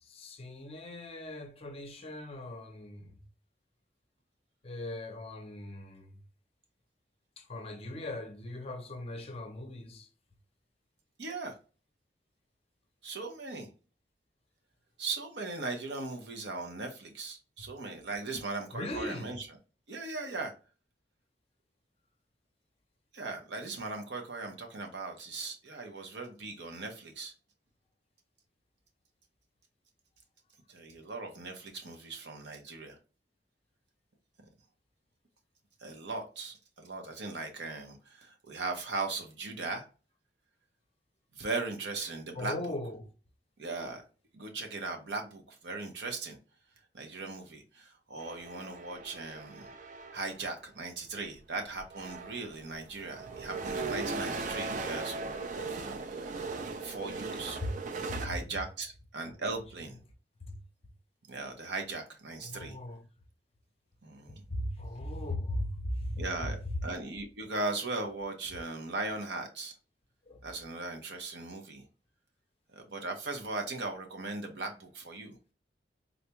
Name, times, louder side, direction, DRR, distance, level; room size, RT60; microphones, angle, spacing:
voice 1, 0.0-3.2 4.6-6.2 7.4-10.1 18.7-19.4 42.4-43.1 57.6-58.5 59.4-59.5 60.4-60.6 62.4-63.0 64.3-66.8 70.3-70.4, left 1 dB, 35° left, 0.6 m, -38 dB
voice 2, 11.2-11.6 13.0-13.7 15.0-19.5 19.9-20.5 23.1-27.3 30.7-33.0 35.8-39.9 41.3-42.7 43.6-44.0 44.3-46.4 46.9-49.7 50.1-57.6 58.1-60.0 61.3-62.8 64.0-64.4 66.2-69.7 70.4-71.9 72.7-75.4, right 3 dB, 75° right, 0.8 m, -38 dB
sound 1, 48.2-50.4 51.4-51.5 51.8-58.3, right 3 dB, 45° right, 0.4 m, -38 dB
3.9 x 2.3 x 2.9 m
head